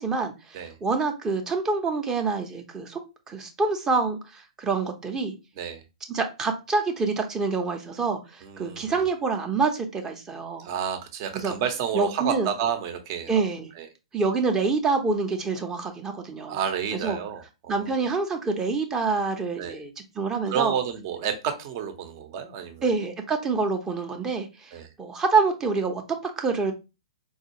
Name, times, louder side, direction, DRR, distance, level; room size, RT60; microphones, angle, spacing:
voice 1, 0.0-3.0 3.3-5.3 6.1-10.7 11.3-11.5 11.9-12.5 13.3-13.7 14.1-16.6 16.9-17.2 17.7-19.9 20.2-20.8 22.8-26.7, right 4 dB, 15° right, 4 dB, 0.7 m, -26 dB
voice 2, 8.4-8.9 10.6-13.4 13.7-13.9 16.5-18.1 19.6-19.8 20.5-22.8 24.7-24.9, right 8 dB, 45° right, 7 dB, 0.8 m, -30 dB
4.5 x 2.3 x 2.9 m, 0.27 s
figure-of-eight pair, 115°, 3 cm